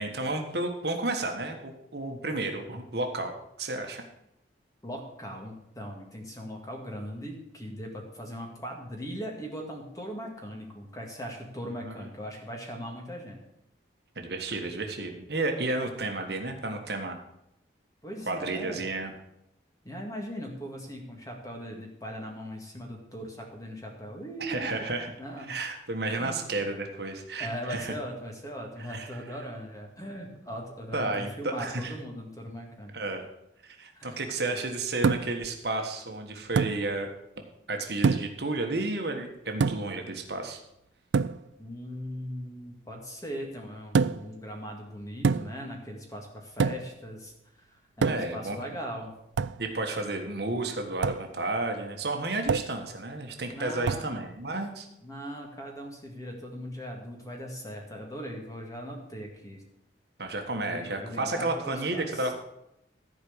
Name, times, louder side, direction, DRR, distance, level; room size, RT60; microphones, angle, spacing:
voice 1, 0.0-4.0 11.8-11.9 14.1-17.2 18.3-19.1 24.4-25.1 25.5-27.9 28.9-29.1 30.9-31.9 32.9-33.2 33.6-37.1 37.7-40.6 48.0-48.6 49.6-54.9 60.2-62.3, right 2 dB, 60° right, 4 dB, 1.4 m, -32 dB
voice 2, 4.8-13.4 18.0-18.8 19.8-24.9 25.2-25.6 26.1-26.5 27.4-33.0 33.9-34.2 41.6-49.1 53.5-54.2 55.0-59.6 60.6-62.3, equal, 20° left, 1 dB, 2.1 m, -39 dB
sound 1, 35.0-35.5 36.6-36.8 38.0-38.4 39.6-40.0 41.1-41.4 43.9-44.3 45.2-45.7 46.6-47.0 48.0-48.4 49.4-49.6 51.0-51.3 52.5-52.8 53.8-54.1, right 5 dB, 75° right, 0.4 m, -26 dB
14.0 x 4.9 x 8.0 m, 0.83 s
head